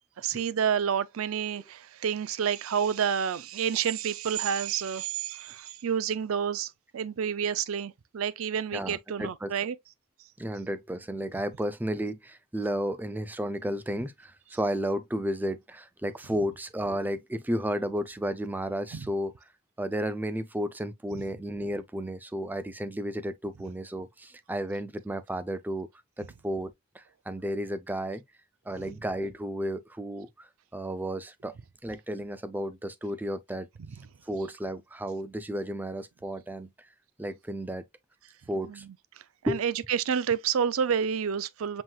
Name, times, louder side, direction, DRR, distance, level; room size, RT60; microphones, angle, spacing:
voice 1, 0.2-9.7 18.9-19.1 28.8-28.9 38.6-38.8 39.4-41.8, right 7 dB, 75° right, 0.4 m, -29 dB
voice 2, 8.7-9.5 10.4-19.3 19.8-25.9 26.2-28.2 28.7-31.5 31.8-33.7 34.3-36.9 37.2-37.9 38.5-38.9 39.5-39.6, equal, 10° right, 0.4 m, -33 dB
7.5 x 3.0 x 2.3 m
head